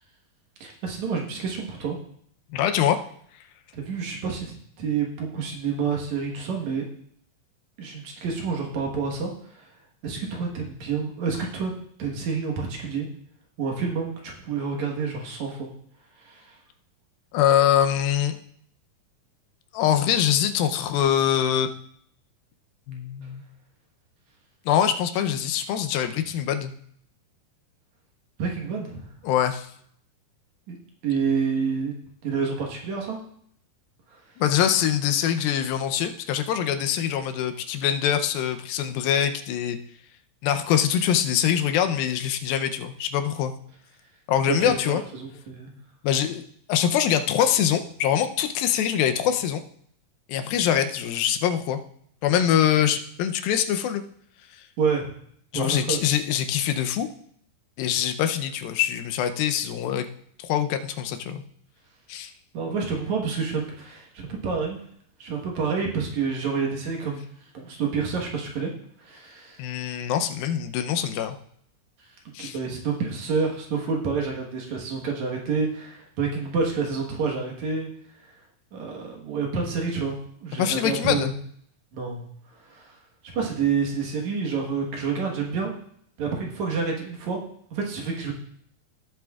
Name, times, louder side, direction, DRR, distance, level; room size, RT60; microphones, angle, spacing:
voice 1, 0.6-2.0 3.7-6.9 7.8-9.7 10.0-11.7 12.0-13.1 13.6-15.7 16.2-16.6 28.4-29.1 30.7-30.8 31.0-31.9 32.2-33.2 44.5-45.7 54.8-55.1 55.5-56.0 62.5-64.8 65.2-67.3 67.5-68.7 69.0-69.7 72.4-77.9 78.7-80.2 80.4-81.3 81.9-82.2 82.6-83.0 83.3-85.7 86.2-87.4 87.7-88.3, right 5 dB, 60° right, 0 dB, 2.5 m, -28 dB
voice 2, 2.5-3.0 17.3-18.4 19.7-21.7 22.9-23.4 24.7-26.7 29.2-29.7 34.4-39.8 40.4-43.5 44.3-45.0 46.0-49.6 50.3-51.8 52.2-54.0 55.5-57.1 57.8-60.1 60.4-61.4 62.1-62.3 69.6-71.4 72.3-72.6 80.6-81.3, left 9 dB, 90° left, 7 dB, 2.5 m, -24 dB
17.0 x 7.9 x 2.4 m, 0.65 s
omnidirectional pair, 4.1 m